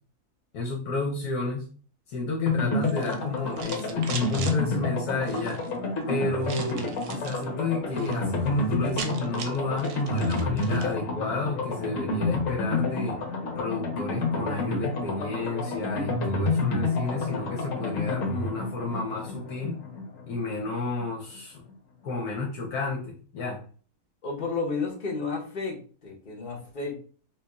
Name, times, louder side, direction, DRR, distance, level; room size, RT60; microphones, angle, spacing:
voice 1, 0.5-1.7 2.1-5.6 6.1-13.2 13.5-19.8 20.3-21.6 22.0-23.6, left 3 dB, 75° left, 0 dB, 1.2 m, -31 dB
sound 1, 2.5-21.1 21.3-21.4 21.7-21.8, left 3 dB, 60° left, 1.2 m, -29 dB
sound 2, 2.8-4.6 5.2-5.7 6.4-7.4 7.8-8.2 8.5-8.6 8.7-11.0, right 6 dB, 70° right, 1.0 m, -40 dB
voice 2, 24.2-27.0, left 4 dB, 35° left, -2 dB, 1.0 m, -32 dB
4.5 x 2.5 x 2.3 m, 0.41 s
omnidirectional pair, 1.7 m